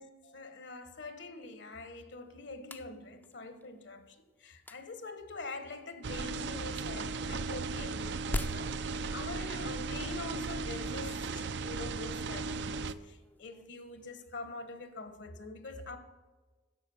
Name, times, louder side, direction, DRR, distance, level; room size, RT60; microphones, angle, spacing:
voice 1, 0.0-16.0, left 3 dB, 70° left, 1.3 m, -45 dB
sound 1, 2.2-15.0, left 1 dB, 10° left, 0.4 m, -47 dB
sound 2, 6.0-12.9, right 4 dB, 65° right, 0.5 m, -36 dB
10.5 x 7.3 x 7.2 m
head